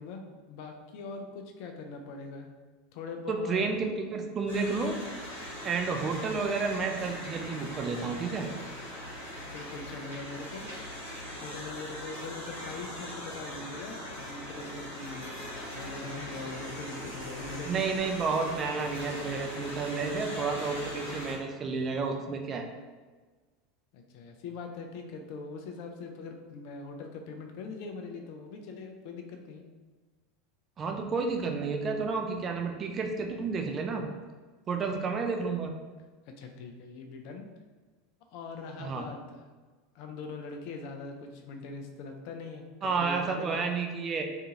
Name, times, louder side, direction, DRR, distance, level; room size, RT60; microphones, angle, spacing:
voice 1, 0.0-2.5 2.9-3.6 9.5-10.7 11.0-15.4 15.7-17.8 23.9-29.6 36.4-37.5 38.3-39.4 39.9-43.6, left 3 dB, 50° left, 4 dB, 0.4 m, -42 dB
voice 2, 3.3-5.0 5.6-8.5 17.6-22.7 30.8-34.0 34.7-35.7 38.8-39.1 42.8-44.2, right 4 dB, 30° right, 3 dB, 0.4 m, -31 dB
sound 1, 4.5-21.3, left 1 dB, 80° left, 1.1 m, -41 dB
2.6 x 2.4 x 2.8 m, 1.3 s
figure-of-eight pair, 80°, 0 cm